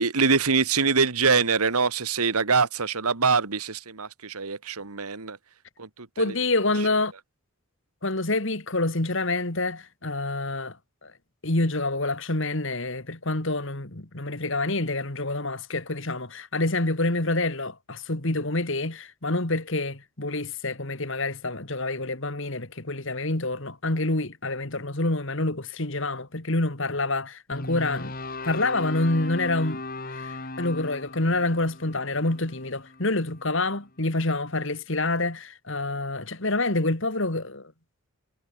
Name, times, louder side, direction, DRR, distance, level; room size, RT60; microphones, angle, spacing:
voice 1, 0.0-5.4 5.8-6.2, right 5 dB, 85° right, 1.7 m, -24 dB
voice 2, 6.2-7.1 8.0-10.8 11.0-11.1 11.4-28.1 28.4-29.8 30.1-37.7, left 2 dB, 55° left, 2.3 m, -27 dB
sound 1, 27.5-33.7, left 2 dB, 40° left, 3.2 m, -37 dB
head